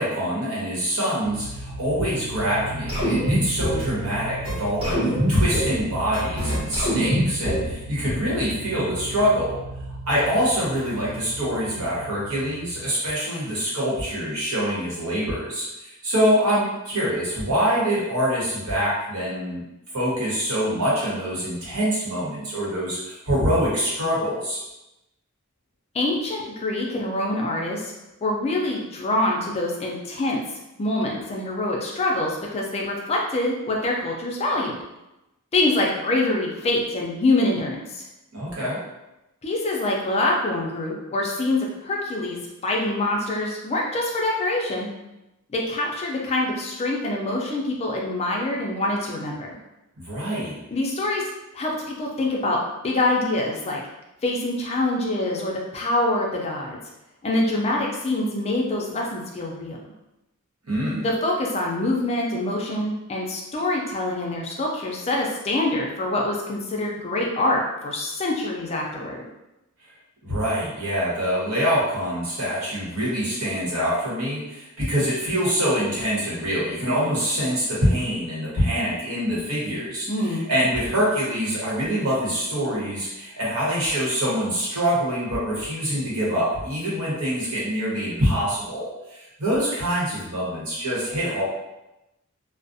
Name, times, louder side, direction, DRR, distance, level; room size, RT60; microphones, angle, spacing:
voice 1, 0.0-9.6 10.1-19.6 19.9-24.6 38.3-38.8 50.0-50.6 60.7-61.1 70.2-91.4, equal, 85° right, -6 dB, 1.0 m, -25 dB
sound 1, 1.2-12.9, right 1 dB, 65° right, 0.3 m, -37 dB
sound 2, 2.9-3.9 4.4-4.5 4.8-5.8 6.1-7.7, equal, 25° right, 1.0 m, -23 dB
voice 2, 25.9-27.9 28.2-30.4 30.8-34.8 35.5-38.1 39.4-44.9 45.5-49.6 50.7-51.2 51.5-52.6 52.8-53.8 54.2-56.8 57.2-59.8 61.0-69.2 80.1-80.5, left 2 dB, 30° left, -1 dB, 0.4 m, -25 dB
2.4 x 2.0 x 2.5 m, 0.95 s
head